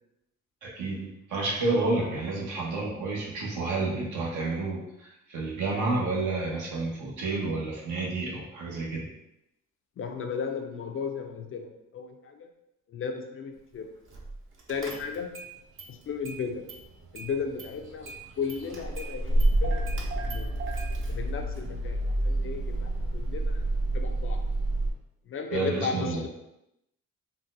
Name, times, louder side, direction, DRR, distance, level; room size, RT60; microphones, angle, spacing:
voice 1, 0.6-9.1 25.5-26.3, right 3 dB, 75° right, -3 dB, 1.1 m, -30 dB
voice 2, 10.0-12.5 12.9-13.9 14.7-15.3 15.9-16.7 17.1-20.6 21.1-23.7 23.9-24.4 25.3-26.3, left 5 dB, 45° left, 4 dB, 0.4 m, -35 dB
Car / Engine starting, 14.1-14.4 14.7-15.5 15.8-16.8 17.1-24.9, right 1 dB, 45° right, 0.7 m, -29 dB
3.9 x 2.2 x 2.5 m, 0.85 s
cardioid pair, 90°, 30 cm